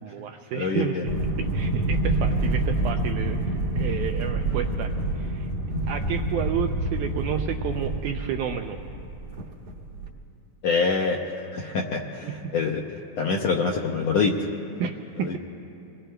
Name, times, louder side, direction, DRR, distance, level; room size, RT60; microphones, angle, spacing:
voice 1, 0.0-1.1 1.4-3.4 3.7-5.5 5.9-8.8 12.2-12.3 14.8-15.4, right 8 dB, 80° right, 4 dB, 1.8 m, -31 dB
voice 2, 0.5-1.0 10.6-11.2 11.5-12.8 13.2-14.5 15.2-15.4, left 4 dB, 75° left, 0 dB, 1.5 m, -25 dB
sound 1, 1.0-10.1, right 2 dB, 55° right, 1.5 m, -27 dB
26.0 x 21.0 x 2.3 m, 2.7 s
omnidirectional pair, 4.0 m